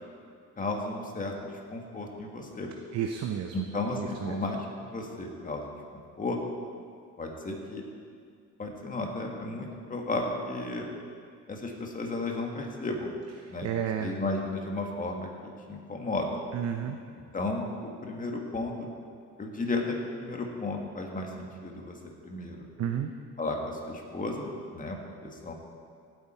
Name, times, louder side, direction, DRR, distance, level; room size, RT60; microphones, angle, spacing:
voice 1, 0.6-2.7 3.5-6.4 7.2-7.8 8.6-10.9 11.5-13.1 13.5-13.7 14.0-16.4 17.3-18.9 19.4-22.0 22.2-22.7 23.4-25.0 25.2-25.5, left 2 dB, 25° left, 1 dB, 2.0 m, -34 dB
voice 2, 2.9-3.5 4.2-4.3 13.6-14.2 16.5-17.0 22.8-23.1, right 9 dB, 55° right, 4 dB, 0.8 m, -31 dB
17.0 x 9.7 x 4.5 m, 2.2 s
cardioid pair, 125°, 31 cm